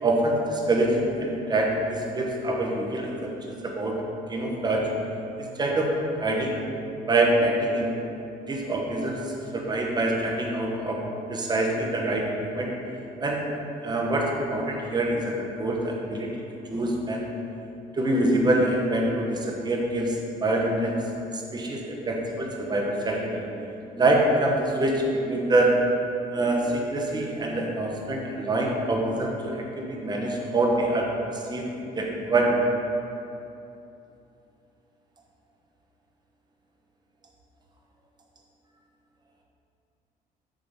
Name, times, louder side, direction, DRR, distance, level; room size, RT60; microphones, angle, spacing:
voice 1, 0.0-3.3 3.8-4.0 4.3-4.9 5.4-5.9 6.2-6.6 7.1-7.9 8.4-9.2 9.5-11.0 11.3-12.7 13.2-13.5 13.8-16.3 16.7-17.2 18.0-20.1 20.4-20.9 21.5-23.4 24.0-25.8 26.3-31.1 31.5-31.6 32.0-32.6, right 1 dB, 25° right, 0 dB, 1.1 m, -25 dB
7.3 x 3.8 x 5.2 m, 2.8 s
cardioid pair, 110°, 17 cm